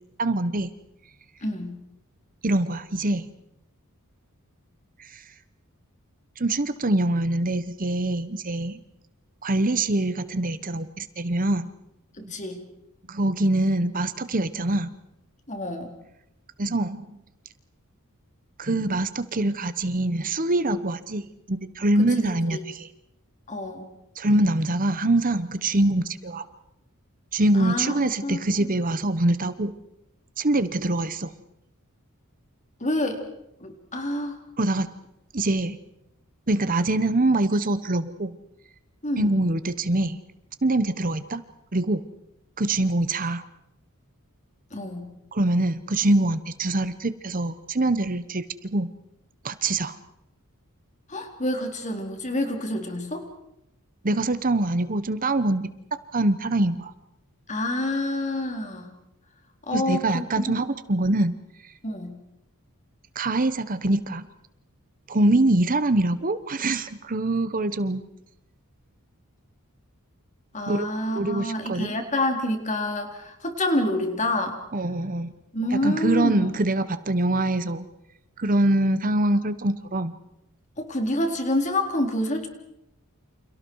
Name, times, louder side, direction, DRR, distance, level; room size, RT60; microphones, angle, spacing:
voice 1, 0.2-0.7 2.4-3.3 5.0-5.2 6.4-8.8 9.4-11.7 12.2-12.3 13.1-14.9 16.6-17.0 18.6-22.9 24.2-26.4 27.3-29.7 30.4-31.3 34.6-34.9 35.3-35.8 36.5-38.3 39.2-40.2 40.6-41.4 41.7-42.0 42.6-43.4 45.3-48.5 48.7-48.9 49.4-50.0 54.0-55.7 56.1-56.9 59.7-61.3 63.1-64.2 65.1-68.0 70.7-72.0 74.7-75.3 75.7-77.9 78.4-80.1, right 2 dB, 40° right, 13 dB, 1.0 m, -24 dB
voice 2, 1.4-1.8 12.2-12.6 15.5-15.9 22.0-22.6 23.5-23.9 27.5-28.0 28.2-28.7 32.8-33.2 33.6-34.4 39.0-39.3 44.7-45.1 51.1-53.3 57.5-58.9 59.7-60.5 61.8-62.1 70.5-74.6 75.5-76.5 80.8-82.5, left 1 dB, 35° left, 4 dB, 3.9 m, -28 dB
29.5 x 28.5 x 4.8 m, 0.84 s
head